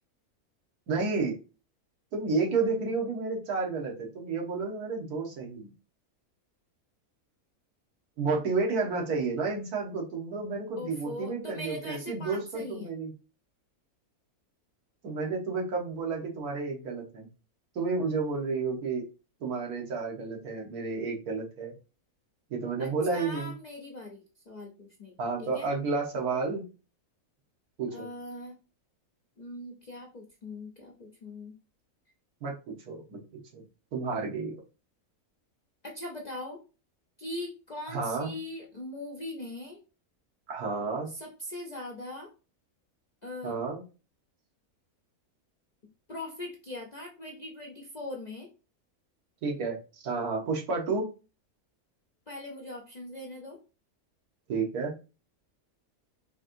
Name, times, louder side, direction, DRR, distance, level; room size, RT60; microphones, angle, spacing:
voice 1, 0.9-1.4 2.1-5.7 8.2-13.1 15.0-17.3 17.7-19.1 19.4-21.7 22.5-23.5 25.2-26.6 27.8-28.1 32.4-33.2 33.5-33.6 33.9-34.6 37.9-38.3 40.5-41.1 43.4-43.8 49.4-51.1 54.5-54.9, right 4 dB, 90° right, 0 dB, 1.6 m, -31 dB
voice 2, 10.8-12.9 22.8-25.1 25.4-25.7 27.9-28.6 29.4-31.5 35.8-36.6 37.2-39.8 41.1-42.3 43.2-43.6 46.1-48.5 52.3-53.6, left 1 dB, 45° left, 0 dB, 0.5 m, -41 dB
4.6 x 3.0 x 2.6 m, 0.33 s
omnidirectional pair, 1.6 m